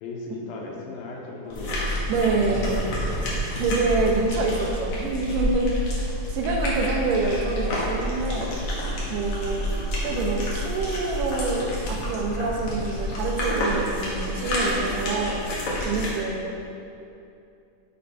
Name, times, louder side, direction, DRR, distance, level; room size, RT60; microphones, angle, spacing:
voice 1, 0.0-1.9 2.4-3.3, left 2 dB, 80° left, -2 dB, 2.7 m, -37 dB
sound 1, 1.4-14.5, right 1 dB, 45° right, 1.9 m, -44 dB
sound 2, 1.5-16.1, equal, 55° left, 1.7 m, -29 dB
voice 2, 2.1-2.8 3.6-5.7 6.3-8.5 9.1-9.7 10.0-15.4 15.9-16.6, right 3 dB, 80° right, 0 dB, 2.2 m, -26 dB
6.9 x 5.3 x 4.2 m, 2.7 s
omnidirectional pair, 4.0 m